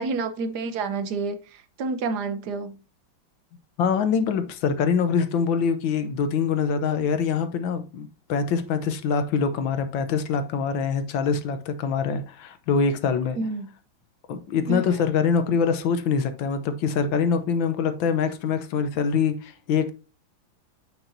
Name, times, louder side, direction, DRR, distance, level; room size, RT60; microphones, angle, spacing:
voice 1, 0.0-2.8 13.4-13.7 14.7-14.8, right 3 dB, 60° right, 1.4 m, -29 dB
voice 2, 3.8-13.4 14.3-19.9, left 6 dB, 75° left, 1.6 m, -24 dB
8.5 x 5.9 x 2.7 m
omnidirectional pair, 2.2 m